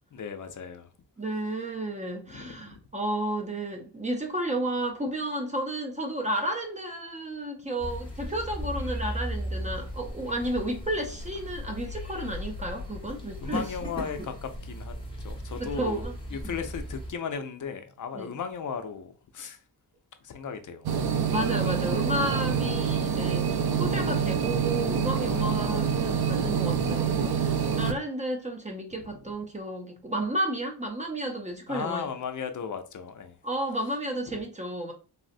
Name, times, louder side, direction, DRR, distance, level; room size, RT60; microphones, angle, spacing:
voice 1, 0.1-0.9 2.3-2.6 13.4-14.9 15.2-16.0 16.3-19.6 20.2-20.9 25.3-25.5 31.7-33.3 34.3-34.4, left 6 dB, 50° left, 0.5 m, -36 dB
voice 2, 1.2-13.7 15.6-16.2 16.4-16.6 18.1-18.3 21.3-32.1 33.4-34.9, right 1 dB, 20° right, 0.5 m, -32 dB
sound 1, 7.8-17.1, equal, 10° left, 1.1 m, -36 dB
sound 2, 20.8-27.9, right 7 dB, 70° right, 0.5 m, -26 dB
3.8 x 2.0 x 2.5 m
wide cardioid pair, 135°, 41 cm